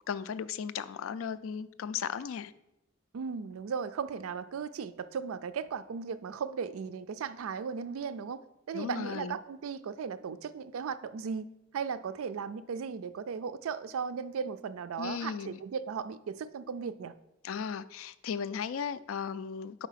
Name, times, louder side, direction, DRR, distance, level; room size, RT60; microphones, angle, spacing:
voice 1, 0.1-2.5 8.7-9.4 15.0-15.6 17.4-19.9, left 7 dB, 65° left, 15 dB, 0.3 m, -36 dB
voice 2, 3.1-8.4 8.7-11.5 11.7-17.1, right 6 dB, 75° right, 14 dB, 0.4 m, -36 dB
4.9 x 4.6 x 5.7 m, 0.87 s
head